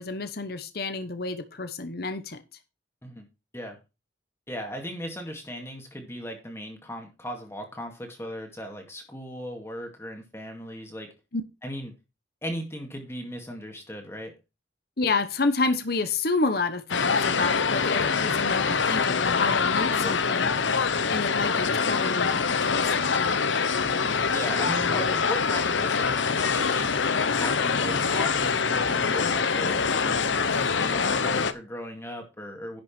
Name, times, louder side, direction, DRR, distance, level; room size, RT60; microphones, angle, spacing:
voice 1, 0.0-2.4 11.3-11.4 15.0-23.4, left 3 dB, 55° left, 10 dB, 1.1 m, -29 dB
voice 2, 4.5-11.1 11.6-11.9 12.4-14.3 20.0-20.2 23.8-27.1 27.3-32.8, equal, 15° left, 3 dB, 2.1 m, -37 dB
sound 1, 16.9-31.5, left 5 dB, 80° left, 0.9 m, -24 dB
11.0 x 6.2 x 4.4 m, 0.27 s
head